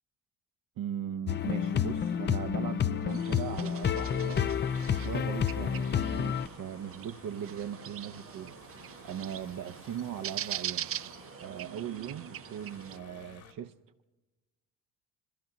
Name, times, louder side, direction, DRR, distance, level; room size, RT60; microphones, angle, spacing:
voice 1, 0.8-4.4 4.9-8.6 9.0-10.9 11.4-13.8, right 9 dB, 60° right, 0.8 m, -39 dB
sound 1, 1.3-6.5, left 8 dB, 30° left, 0.4 m, -30 dB
sound 2, 1.4-13.5, left 6 dB, 65° left, 2.2 m, -54 dB
sound 3, 3.1-13.0, right 11 dB, 35° right, 0.4 m, -42 dB
21.5 x 15.5 x 4.0 m
supercardioid pair, 60°, 39 cm